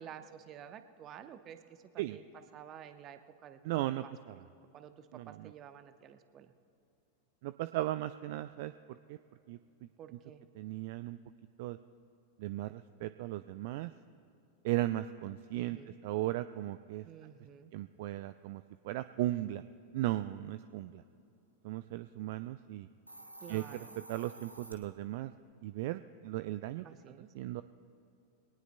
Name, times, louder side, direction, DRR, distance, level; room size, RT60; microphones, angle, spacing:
voice 1, 0.0-3.6 4.0-4.1 4.7-6.5 10.0-10.4 15.5-16.0 17.0-17.7 23.4-24.0 26.8-27.3, right 9 dB, 30° right, 10 dB, 0.8 m, -51 dB
voice 2, 3.6-4.3 5.1-5.5 7.4-9.2 9.5-9.6 10.6-11.2 11.6-11.8 12.4-13.9 14.6-15.8 16.0-17.0 17.7-19.6 19.9-21.0 21.6-22.9 23.5-23.6 24.1-25.3 25.6-26.8 27.4-27.6, right 15 dB, 50° right, 13 dB, 0.3 m, -36 dB
Hiss, 22.9-24.7, right 1 dB, 85° right, 1.3 m, -51 dB
22.5 x 18.5 x 2.2 m, 2.8 s
figure-of-eight pair, 90°, 0 cm